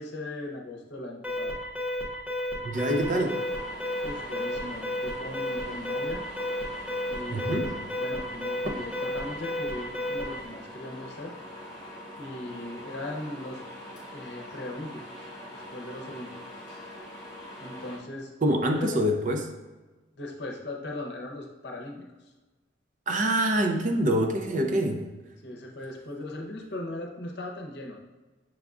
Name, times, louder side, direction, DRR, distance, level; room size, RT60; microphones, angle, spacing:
voice 1, 0.0-1.6 4.0-6.2 7.1-11.3 11.8-11.9 12.2-13.6 14.1-15.0 15.5-16.4 17.6-19.0 20.2-22.0 25.4-28.0, left 1 dB, 60° left, 0 dB, 0.7 m, -38 dB
Alarm, 1.2-10.4, left 1 dB, 5° right, 0.7 m, -32 dB
voice 2, 2.6-3.4 7.3-7.7 18.4-19.5 23.1-25.1, right 1 dB, 40° right, 4 dB, 0.5 m, -25 dB
sound 1, 2.7-18.0, left 1 dB, 20° left, 1.2 m, -43 dB
6.0 x 3.6 x 2.4 m, 1.2 s
head